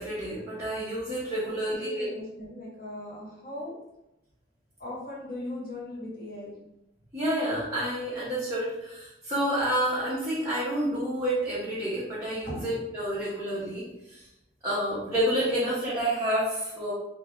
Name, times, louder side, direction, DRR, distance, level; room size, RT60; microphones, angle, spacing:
voice 1, 0.0-2.1 7.1-14.3 14.6-16.9, right 1 dB, 15° right, -10 dB, 0.8 m, -29 dB
voice 2, 1.4-3.7 4.8-6.6 12.4-12.6, left 1 dB, 50° left, -6 dB, 1.3 m, -39 dB
3.7 x 2.3 x 2.9 m, 0.90 s
head